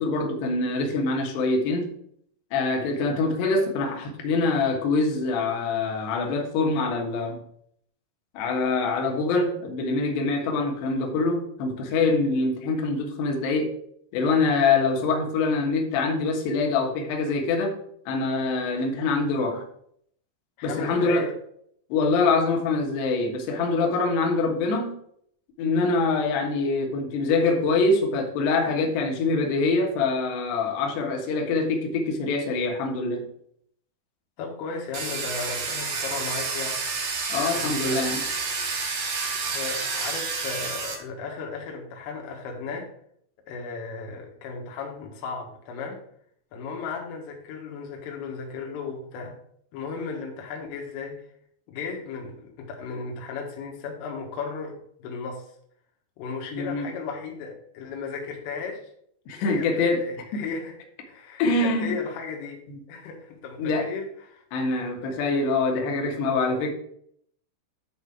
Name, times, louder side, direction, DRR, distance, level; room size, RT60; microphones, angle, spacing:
voice 1, 0.0-1.9 2.5-7.4 8.3-13.7 14.1-17.8 18.1-19.7 20.6-21.3 21.9-24.9 25.6-33.3 37.3-38.2 56.5-56.9 59.3-60.1 60.3-60.5 61.4-62.0 63.6-63.9 64.5-66.7, left 3 dB, 65° left, 1 dB, 3.2 m, -24 dB
voice 2, 20.6-21.3 34.4-36.8 37.5-38.1 39.4-42.9 43.5-46.0 46.5-49.4 49.7-51.2 51.7-55.5 56.2-58.9 59.4-60.8 61.1-62.6 62.9-64.4, left 4 dB, 85° left, 1 dB, 4.0 m, -35 dB
Domestic sounds home sounds, 34.9-40.9, right 4 dB, 75° right, 4.6 m, -29 dB
11.0 x 3.8 x 5.9 m, 0.67 s
omnidirectional pair, 5.7 m